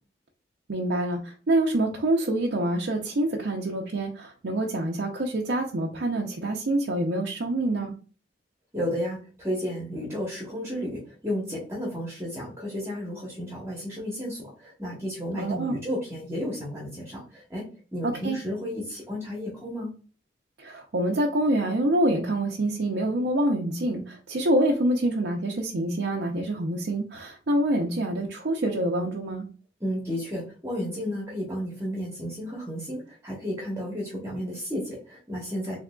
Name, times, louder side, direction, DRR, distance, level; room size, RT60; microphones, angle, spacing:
voice 1, 0.7-7.9 15.3-15.7 18.0-18.4 20.6-29.5, right 1 dB, 70° right, 0 dB, 0.6 m, -26 dB
voice 2, 8.7-17.6 17.9-19.9 29.8-35.8, equal, 15° right, -4 dB, 0.9 m, -32 dB
3.7 x 3.3 x 2.2 m, 0.38 s
head